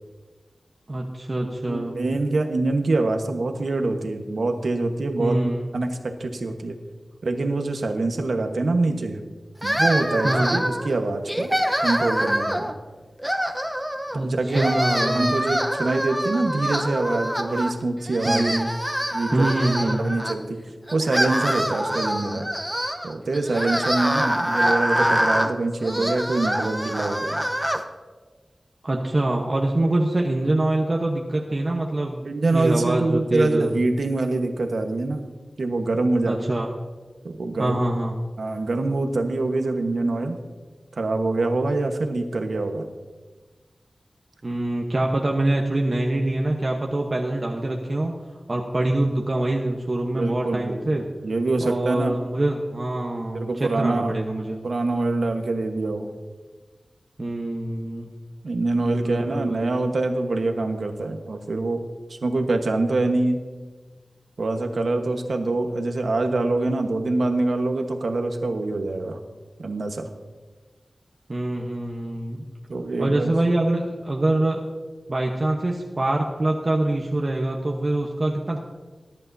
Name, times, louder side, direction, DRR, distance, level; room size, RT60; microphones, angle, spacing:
voice 1, 0.9-2.0 5.2-5.6 10.2-10.6 14.1-15.4 18.2-18.7 19.3-20.0 28.8-32.3 32.5-33.8 36.3-36.7 37.6-38.2 44.4-48.1 48.5-51.1 51.6-54.6 57.2-58.1 58.8-59.7 71.3-72.4 73.0-74.6 75.1-78.6, right 1 dB, 40° right, 0 dB, 1.0 m, -24 dB
voice 2, 1.7-5.4 5.7-6.7 7.2-9.2 9.6-11.5 11.8-12.7 14.1-18.5 19.1-19.5 20.0-20.6 20.9-22.5 23.0-27.4 32.2-35.2 35.6-36.4 37.2-37.8 38.4-40.4 41.0-42.8 50.1-52.2 53.3-54.1 54.6-56.1 58.4-61.8 62.2-63.4 64.4-69.2 69.6-70.1 72.7-73.3, right 2 dB, 75° right, 4 dB, 1.2 m, -25 dB
sound 1, 9.6-10.9 11.3-12.7 13.2-14.2 14.5-17.8 18.1-20.3 20.9-27.8, equal, 5° right, 0.8 m, -25 dB
20.0 x 10.5 x 2.7 m, 1.3 s
wide cardioid pair, 85°, 0 cm